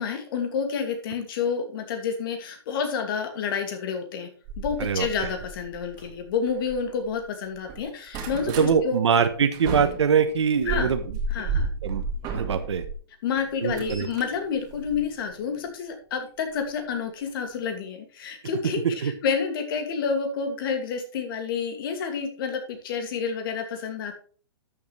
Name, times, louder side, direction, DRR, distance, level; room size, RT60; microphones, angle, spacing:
voice 1, 0.0-4.3 4.6-9.0 10.7-10.9 11.3-11.7 13.2-24.2, left 6 dB, 55° left, 5 dB, 2.5 m, -29 dB
sound 1, 4.4-7.2 7.5-8.7 9.2-13.0 13.4-15.6 16.6-16.8 17.3-17.4 17.6-17.7, right 3 dB, 30° right, 2.2 m, -33 dB
voice 2, 4.8-5.3 8.6-11.0 11.8-12.8 13.6-14.1 19.0-19.1, right 6 dB, 90° right, 8 dB, 1.2 m, -23 dB
12.5 x 7.2 x 3.4 m, 0.42 s
hypercardioid pair, 150°, 14 cm